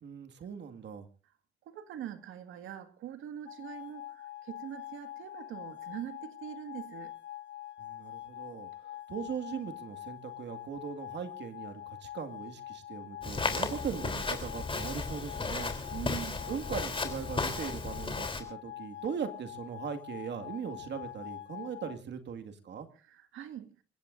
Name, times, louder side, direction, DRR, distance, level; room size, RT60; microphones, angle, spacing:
voice 1, 0.0-1.1 7.8-8.7 9.1-15.7 16.5-22.9, right 7 dB, 60° right, 2.1 m, -39 dB
voice 2, 1.7-7.1 15.9-16.5 23.0-23.8, right 11 dB, 85° right, 1.9 m, -43 dB
sound 1, 3.5-22.0, left 13 dB, 70° left, 1.4 m, -45 dB
Walk footsteps, 13.2-18.4, left 3 dB, 25° left, 3.5 m, -34 dB
27.5 x 16.0 x 2.6 m
cardioid pair, 90°, 20 cm